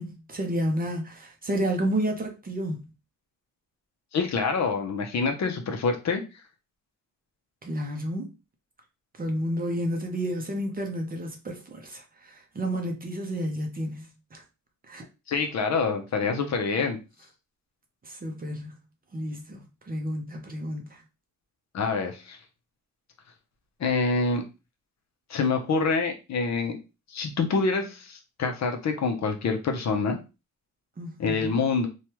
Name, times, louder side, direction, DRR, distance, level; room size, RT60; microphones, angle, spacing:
voice 1, 0.0-2.9 7.6-8.3 9.2-14.4 14.9-15.0 18.0-18.7 19.1-21.0 31.0-31.6, equal, 25° right, 0.6 m, -31 dB
voice 2, 4.1-6.2 15.3-17.0 21.7-22.4 23.8-24.4 25.3-26.8 27.1-30.2 31.2-31.9, left 4 dB, 50° left, 0.6 m, -26 dB
3.1 x 2.3 x 2.9 m
wide cardioid pair, 140°, 34 cm